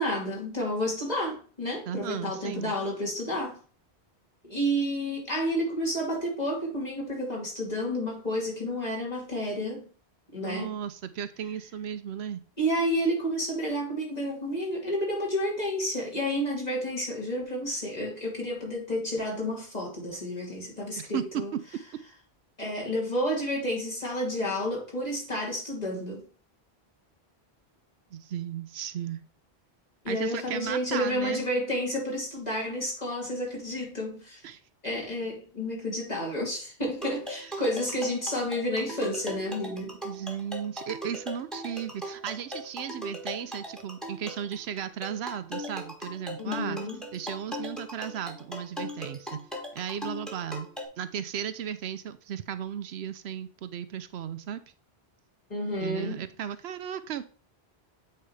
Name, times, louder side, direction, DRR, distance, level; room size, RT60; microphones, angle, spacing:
voice 1, 0.0-3.6 4.4-9.9 10.3-10.7 12.6-21.5 22.6-26.2 30.0-34.4 34.8-40.0 46.4-47.0 55.5-56.2, equal, 40° left, -3 dB, 2.9 m, -30 dB
voice 2, 1.9-2.7 10.3-12.4 21.0-21.6 28.1-29.2 30.1-31.4 34.4-34.6 37.4-37.6 40.0-46.8 47.1-49.4 49.7-50.7 51.0-54.6 55.8-57.2, right 9 dB, 80° right, 12 dB, 0.9 m, -35 dB
sound 1, 37.0-50.9, equal, ahead, 1.5 m, -39 dB
8.6 x 4.3 x 3.2 m, 0.40 s
omnidirectional pair, 1.1 m